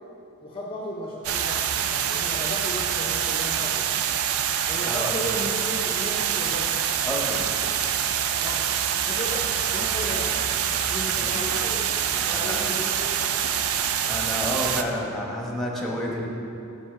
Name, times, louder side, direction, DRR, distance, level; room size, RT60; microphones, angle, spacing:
voice 1, 0.4-3.9 4.7-6.8 8.4-8.7 9.1-13.4, left 1 dB, 25° left, -2 dB, 0.6 m, -35 dB
sound 1, 1.2-14.8, right 9 dB, 75° right, 0.4 m, -25 dB
voice 2, 7.0-7.5 11.2-11.4 12.3-12.6 14.1-16.3, equal, ahead, -2 dB, 1.0 m, -30 dB
5.6 x 5.4 x 6.6 m, 2.7 s
head